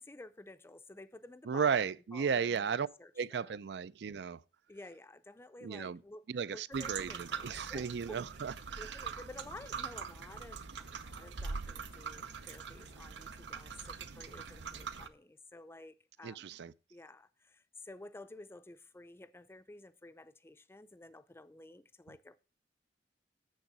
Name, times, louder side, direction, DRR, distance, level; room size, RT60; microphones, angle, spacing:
voice 1, 0.0-3.5 4.7-6.2 6.5-8.2 8.8-16.5 16.9-22.4, left 2 dB, 15° left, 0.5 m, -52 dB
voice 2, 1.5-2.9 3.2-4.4 5.6-6.0 6.3-9.1 16.2-16.7, right 6 dB, 70° right, 0.4 m, -35 dB
sound 1, 6.7-15.1, right 5 dB, 90° right, 0.8 m, -43 dB
7.0 x 6.5 x 6.0 m
head